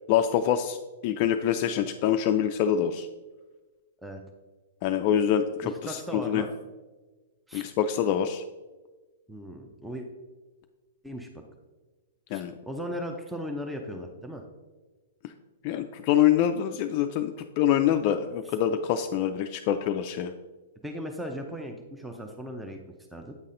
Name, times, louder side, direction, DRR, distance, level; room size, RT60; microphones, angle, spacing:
voice 1, 0.1-0.8 1.0-3.1 4.8-6.4 7.5-8.4 12.3-12.5 15.2-15.3 15.6-20.3, left 10 dB, 45° left, 6 dB, 0.3 m, -25 dB
voice 2, 5.6-6.5 7.5-7.7 9.3-10.1 11.0-11.3 12.3-14.4 20.8-22.8 23.1-23.4, equal, 5° right, 3 dB, 0.6 m, -37 dB
8.2 x 4.1 x 3.8 m, 1.2 s
hypercardioid pair, 130°, 0 cm